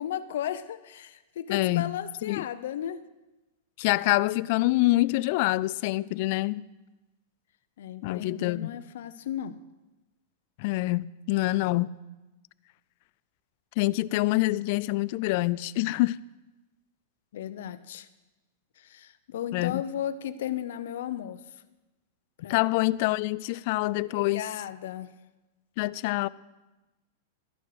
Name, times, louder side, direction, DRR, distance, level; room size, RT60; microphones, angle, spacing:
voice 1, 0.0-3.0 7.8-9.6 17.3-18.1 18.8-21.4 22.4-22.7 24.1-25.1, left 10 dB, 75° left, 0.7 m, -35 dB
voice 2, 1.5-1.9 2.3-2.4 3.8-6.6 8.0-8.7 10.6-11.9 13.8-16.2 19.5-19.8 22.5-24.4 25.8-26.3, left 19 dB, 55° left, 0.3 m, -26 dB
12.5 x 12.0 x 4.8 m
hypercardioid pair, 135°, 0 cm